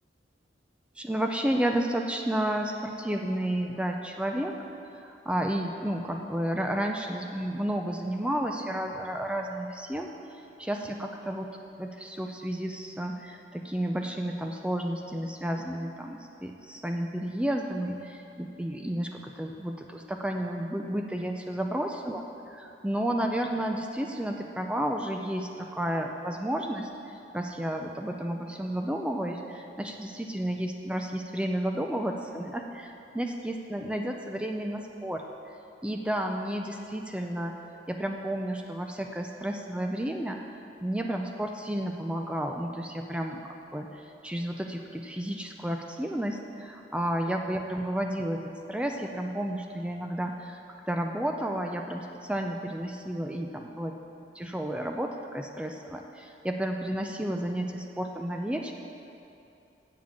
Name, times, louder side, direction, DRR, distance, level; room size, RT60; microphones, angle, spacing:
voice 1, 1.0-4.6 4.9-10.1 10.6-11.5 11.8-26.9 27.3-35.2 35.8-37.5 37.9-40.4 40.8-48.4 48.7-50.6 50.9-53.9 54.3-58.7, right 1 dB, 5° right, 3 dB, 0.4 m, -32 dB
7.5 x 7.4 x 7.1 m, 2.7 s
head